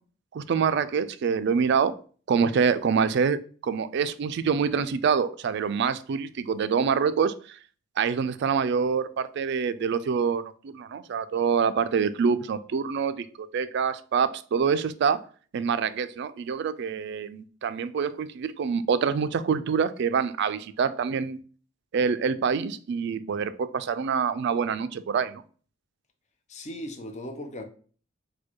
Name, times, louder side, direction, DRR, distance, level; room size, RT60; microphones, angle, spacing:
voice 1, 0.3-1.9 2.3-7.6 8.0-15.2 15.5-21.4 21.9-25.4, right 6 dB, 55° right, 0.3 m, -26 dB
voice 2, 26.5-27.6, left 1 dB, 35° left, 0.6 m, -37 dB
4.4 x 2.2 x 4.5 m
head